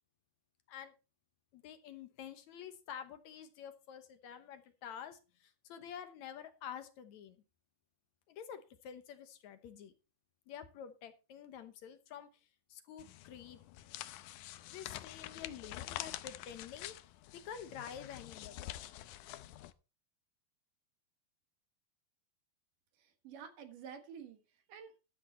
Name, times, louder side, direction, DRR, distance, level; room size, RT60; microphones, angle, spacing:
voice 1, 1.5-7.4 8.3-9.9 10.5-12.3 12.7-13.6 14.7-17.0 17.4-18.8, left 8 dB, 70° left, 1.8 m, -49 dB
sound 1, 13.0-19.7, left 14 dB, 85° left, 1.8 m, -47 dB
voice 2, 23.0-25.0, right 7 dB, 65° right, 2.8 m, -51 dB
12.5 x 8.4 x 4.3 m
omnidirectional pair, 4.4 m